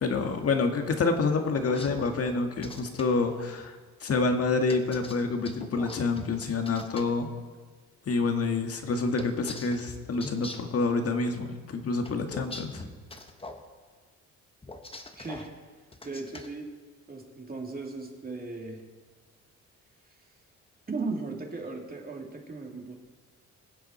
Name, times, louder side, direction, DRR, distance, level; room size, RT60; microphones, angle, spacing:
voice 1, 0.0-7.3 8.1-12.8, left 3 dB, 50° left, 5 dB, 1.7 m, -28 dB
sound 1, 1.6-3.0 4.7-7.0 9.2-10.8 12.0-13.6 14.6-15.5 15.9-16.5, left 2 dB, 20° left, 1.4 m, -42 dB
voice 2, 15.2-15.5 16.0-16.7 17.1-18.8 20.1-20.3 20.9-23.0, right 3 dB, 30° right, 1 dB, 2.6 m, -37 dB
21.5 x 7.8 x 4.3 m, 1.4 s
cardioid pair, 90°, 30 cm